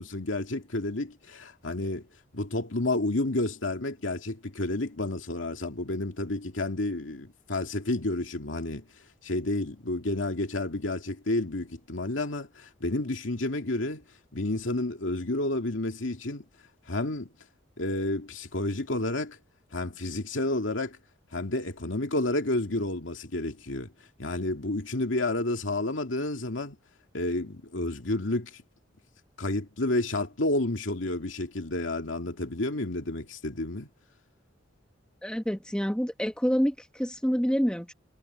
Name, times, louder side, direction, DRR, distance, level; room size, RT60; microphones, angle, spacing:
voice 1, 0.0-2.1 2.3-8.8 9.2-14.0 14.3-16.4 16.9-17.3 17.8-19.4 19.7-21.0 21.3-23.9 24.2-26.8 27.1-28.6 29.4-33.9, left 2 dB, 85° left, 2.3 m, -30 dB
voice 2, 35.2-37.9, equal, 5° left, 1.5 m, -27 dB
head